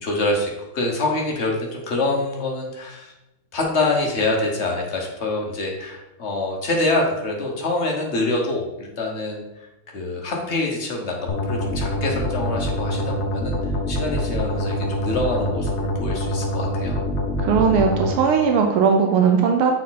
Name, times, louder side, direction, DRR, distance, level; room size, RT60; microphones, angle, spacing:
voice 1, 0.0-3.1 3.5-9.4 9.9-13.6 13.9-17.0, left 2 dB, 40° left, -1 dB, 1.2 m, -25 dB
sound 1, 11.3-18.1, left 1 dB, 85° left, 0.6 m, -25 dB
voice 2, 17.4-19.7, right 6 dB, 80° right, 3 dB, 1.6 m, -18 dB
6.9 x 4.8 x 4.1 m, 0.96 s
omnidirectional pair, 2.4 m